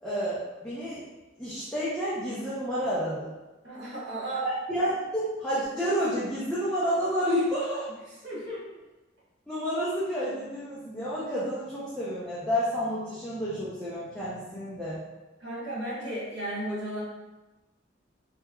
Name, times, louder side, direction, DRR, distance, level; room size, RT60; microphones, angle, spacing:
voice 1, 0.0-1.0 1.4-3.3 4.4-7.9 9.5-15.0, equal, 5° left, -11 dB, 0.5 m, -30 dB
voice 2, 3.6-4.4 8.2-8.6 15.4-17.0, right 1 dB, 60° right, -8 dB, 1.4 m, -34 dB
3.4 x 3.0 x 2.3 m, 1.1 s
head